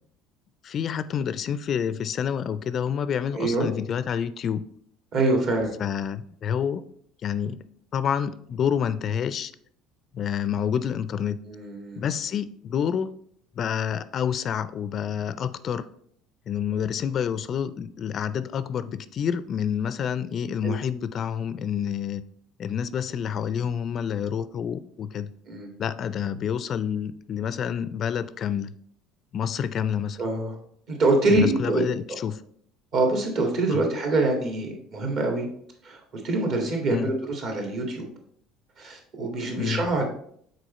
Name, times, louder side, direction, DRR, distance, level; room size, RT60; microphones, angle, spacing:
voice 1, 0.6-4.7 5.8-6.8 7.2-7.6 7.9-9.5 10.1-11.4 12.0-13.1 13.6-15.9 16.5-22.2 22.6-25.3 25.8-28.7 29.3-30.2 31.3-32.4 33.7-33.8 36.9-37.1 39.6-39.9, left 8 dB, 45° left, 14 dB, 0.3 m, -28 dB
voice 2, 3.3-3.7 5.1-5.7 11.5-12.0 20.6-20.7 25.5-25.7 30.2-30.5 30.9-31.8 32.9-35.5 35.8-36.0 36.2-38.1 38.8-40.0, right 2 dB, 55° right, 2 dB, 1.8 m, -25 dB
6.3 x 4.1 x 4.2 m, 0.66 s
supercardioid pair, 110°, 0 cm